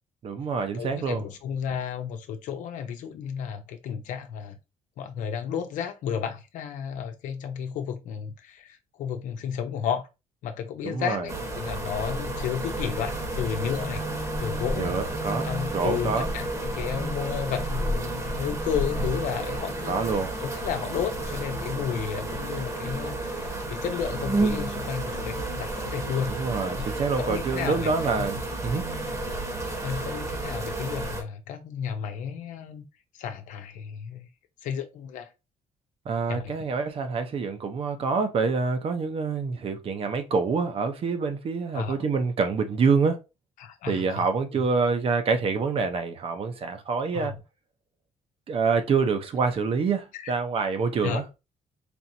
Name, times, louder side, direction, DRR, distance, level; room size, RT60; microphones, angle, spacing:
voice 1, 0.2-1.2 10.8-11.3 14.8-16.3 19.9-20.3 26.2-28.8 36.1-43.2 43.9-47.3 48.5-51.2, right 4 dB, 50° right, 0.8 m, -26 dB
voice 2, 0.8-4.6 5.0-10.1 10.4-14.1 14.4-15.0 15.4-20.0 20.4-26.4 27.2-28.2 29.8-32.8 33.1-34.3 34.6-35.3 36.3-36.7 41.7-42.0 43.6-44.3 47.1-47.3 50.1-50.3 51.0-51.2, left 8 dB, 85° left, 0.8 m, -32 dB
urban-bees, 11.3-31.2, right 2 dB, 25° right, 1.1 m, -31 dB
4.4 x 3.1 x 2.7 m
cardioid pair, 120°, 13 cm